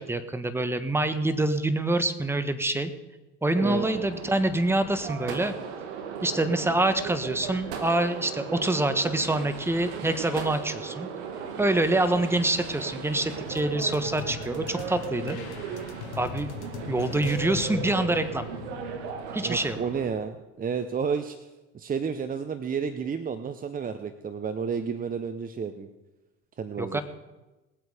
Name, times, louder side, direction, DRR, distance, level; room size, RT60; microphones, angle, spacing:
voice 1, 0.0-2.9 3.4-5.6 6.2-11.1 11.6-15.4 16.2-16.5 16.9-18.5 19.3-19.8 26.8-27.0, right 2 dB, 5° right, 10 dB, 1.3 m, -26 dB
sound 1, 3.5-20.1, right 6 dB, 90° right, 1.7 m, -37 dB
sound 2, 13.4-20.0, left 8 dB, 85° left, 1.2 m, -40 dB
voice 2, 19.4-21.4 21.7-25.9 26.6-27.0, right 6 dB, 25° right, 10 dB, 0.9 m, -31 dB
20.0 x 8.2 x 5.0 m, 1.1 s
supercardioid pair, 90°, 33 cm